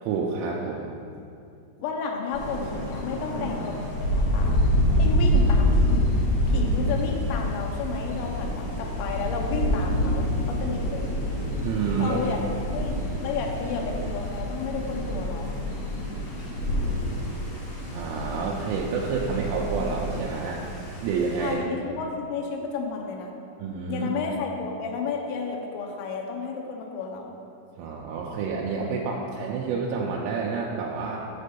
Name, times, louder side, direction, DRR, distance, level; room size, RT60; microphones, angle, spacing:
voice 1, 0.0-0.9 11.6-12.2 17.9-21.6 23.6-24.1 27.8-31.2, right 5 dB, 85° right, -3 dB, 3.1 m, -29 dB
voice 2, 1.8-4.6 4.9-6.1 6.5-11.3 12.0-12.4 12.7-15.6 21.4-23.3 23.9-27.4, left 5 dB, 80° left, 0 dB, 2.7 m, -32 dB
Thunder, 2.3-21.5, equal, 55° left, 1.8 m, -27 dB
7.5 x 4.2 x 6.8 m, 2.6 s
omnidirectional pair, 5.9 m